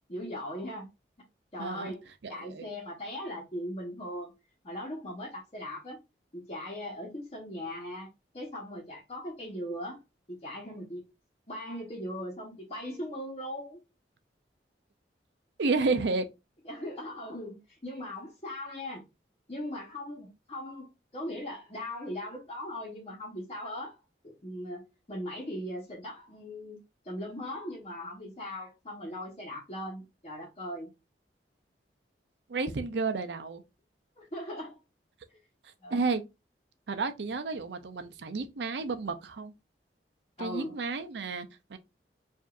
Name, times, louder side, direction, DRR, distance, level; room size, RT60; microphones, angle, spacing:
voice 1, 0.1-0.9 1.5-4.3 4.6-6.0 6.3-8.1 8.3-10.0 10.3-11.1 11.5-13.8 16.6-19.0 19.5-24.0 24.2-26.8 27.0-30.9 34.2-34.8 35.8-36.0 40.4-40.8, left 1 dB, 35° left, 1.0 m, -39 dB
voice 2, 1.6-1.9 2.2-2.6 15.6-16.2 32.5-33.6 35.9-36.2 36.9-39.5 40.4-41.8, right 4 dB, 75° right, 0.5 m, -31 dB
4.8 x 2.6 x 2.5 m
head